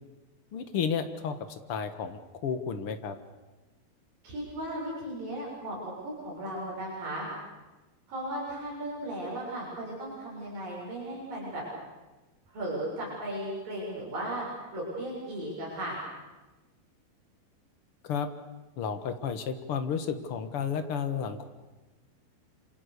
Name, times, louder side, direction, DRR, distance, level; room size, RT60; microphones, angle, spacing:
voice 1, 0.5-1.4 1.7-3.2 18.0-18.3 18.8-21.5, left 7 dB, 50° left, 9 dB, 1.8 m, -32 dB
voice 2, 4.2-7.3 8.1-11.6 12.5-14.5 14.7-16.0, right 1 dB, 65° right, -4 dB, 8.6 m, -36 dB
27.5 x 27.0 x 6.9 m, 1.1 s
omnidirectional pair, 4.3 m